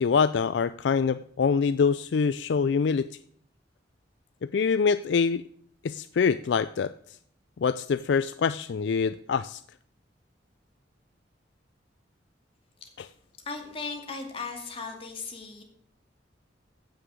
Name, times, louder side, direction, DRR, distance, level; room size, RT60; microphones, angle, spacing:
voice 1, 0.0-3.1 4.5-5.4 5.8-6.9 7.6-9.6 13.0-13.1, left 5 dB, 70° left, 14 dB, 0.4 m, -25 dB
voice 2, 13.4-15.6, left 4 dB, 30° left, 2 dB, 2.3 m, -37 dB
14.5 x 6.5 x 6.3 m, 0.63 s
head